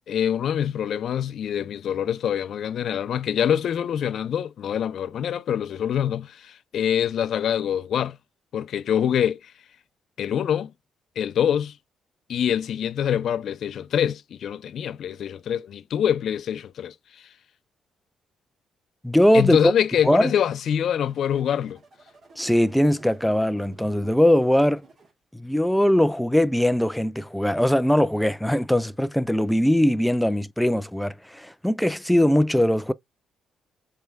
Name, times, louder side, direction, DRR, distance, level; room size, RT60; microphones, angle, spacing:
voice 1, 0.1-8.2 8.5-9.5 10.2-10.7 11.2-11.8 12.3-17.3 19.3-21.8, left 9 dB, 65° left, 0.5 m, -25 dB
voice 2, 19.0-19.7 20.0-20.3 22.4-24.8 25.3-32.9, left 1 dB, 5° left, 0.3 m, -21 dB
sound 1, 19.8-25.1, right 5 dB, 50° right, 1.3 m, -51 dB
4.5 x 3.3 x 2.3 m
cardioid pair, 90°, 0 cm